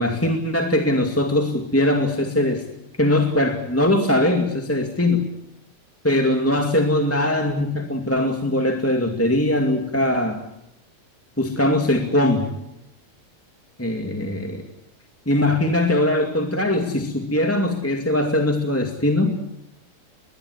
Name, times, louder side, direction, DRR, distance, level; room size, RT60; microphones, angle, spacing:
voice 1, 0.0-2.6 3.0-5.3 6.0-10.4 11.4-12.5 13.8-14.6 15.2-19.3, left 1 dB, 5° left, 3 dB, 1.8 m, -21 dB
22.0 x 21.0 x 8.1 m, 0.82 s
omnidirectional pair, 3.4 m